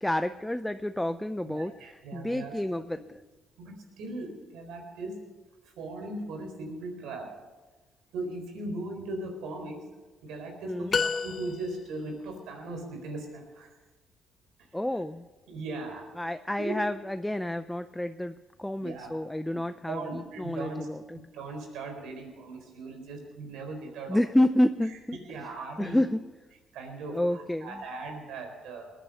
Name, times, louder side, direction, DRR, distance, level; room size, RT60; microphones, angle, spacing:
voice 1, 0.0-3.2 10.7-11.0 14.7-15.2 16.2-21.2 24.1-25.2 25.8-26.2 27.1-27.8, left 1 dB, 5° left, 9 dB, 0.5 m, -29 dB
voice 2, 1.4-2.5 3.6-5.2 5.8-7.3 8.1-9.8 10.2-13.7 15.5-16.0 16.6-16.8 18.8-19.1 19.9-20.9 21.3-24.2 24.9-25.0 25.3-26.1 26.7-28.9, right 2 dB, 90° right, 4 dB, 4.1 m, -38 dB
sound 1, 10.9-12.0, left 5 dB, 45° left, 1.0 m, -30 dB
20.0 x 9.2 x 6.9 m, 1.2 s
cardioid pair, 90°, 0 cm